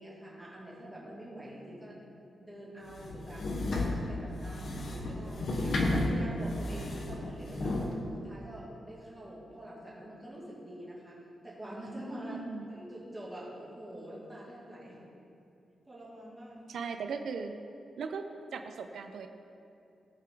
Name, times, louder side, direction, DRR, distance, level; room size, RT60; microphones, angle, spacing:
voice 1, 0.0-2.0 2.4-3.5 3.7-7.7 8.1-11.2 11.4-12.4 12.7-15.0 15.9-16.6, right 1 dB, 10° right, -7 dB, 2.3 m, -45 dB
sound 1, 2.9-7.9, left 2 dB, 50° left, 1.1 m, -32 dB
voice 2, 12.3-12.7 16.7-17.6 18.0-18.3 18.5-19.3, right 5 dB, 70° right, 6 dB, 0.6 m, -38 dB
17.0 x 5.7 x 3.9 m, 2.6 s
wide cardioid pair, 175°, 0 cm